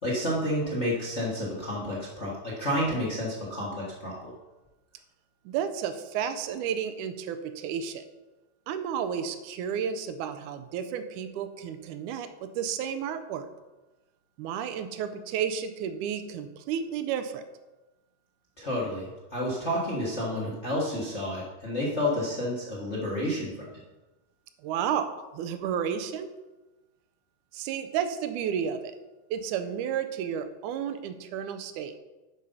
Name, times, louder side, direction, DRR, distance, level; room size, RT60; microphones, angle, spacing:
voice 1, 0.0-4.3 18.6-23.5, left 1 dB, 40° left, -5 dB, 0.9 m, -30 dB
voice 2, 5.5-8.0 8.7-13.5 14.4-17.4 24.6-26.3 27.5-28.9 29.3-31.9, right 8 dB, 80° right, 9 dB, 2.0 m, -32 dB
11.0 x 4.9 x 5.5 m, 1.1 s
omnidirectional pair, 3.8 m